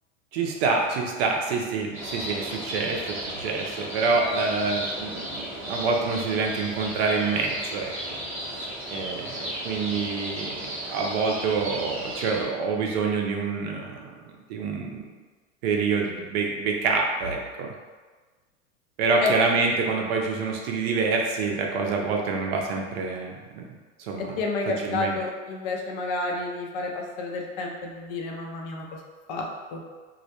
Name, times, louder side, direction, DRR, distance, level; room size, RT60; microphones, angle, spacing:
voice 1, 0.3-8.2 8.5-14.1 14.5-15.0 15.6-17.7 19.0-23.6 24.0-24.3 24.7-25.2, right 4 dB, 55° right, 1 dB, 0.5 m, -27 dB
sound 1, 1.9-12.4, right 1 dB, 5° right, 0.6 m, -35 dB
voice 2, 24.2-28.9 29.3-29.5 29.7-29.8, left 3 dB, 50° left, 1 dB, 0.5 m, -30 dB
2.2 x 2.1 x 2.8 m, 1.4 s
hypercardioid pair, 105°, 37 cm